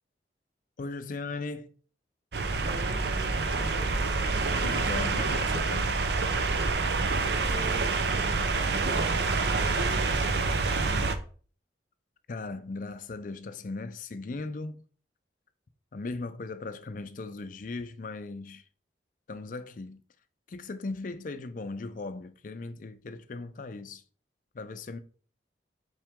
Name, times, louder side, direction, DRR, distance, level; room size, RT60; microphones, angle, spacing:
voice 1, 0.8-1.7 4.6-6.1 12.3-14.9 15.9-18.6 19.3-20.0 20.5-24.0 24.5-25.0, left 3 dB, 50° left, 0.4 m, -38 dB
sound 1, 2.3-11.1, right 3 dB, 70° right, 0.6 m, -27 dB
voice 2, 2.6-4.1 7.1-11.1, right 1 dB, 35° right, 1.1 m, -44 dB
5.8 x 4.6 x 3.6 m
head